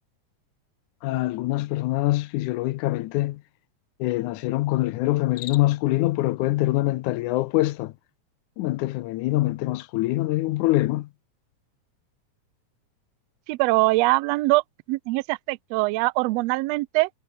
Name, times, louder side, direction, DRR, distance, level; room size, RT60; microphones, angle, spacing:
voice 1, 1.0-3.4 4.0-7.9 8.6-11.1, left 17 dB, 90° left, 2.2 m, -24 dB
Cricket, 5.2-6.0, left 13 dB, 75° left, 2.3 m, -41 dB
voice 2, 13.5-14.6 14.9-17.1, right 22 dB, 80° right, 1.5 m, -22 dB
omnidirectional pair, 3.4 m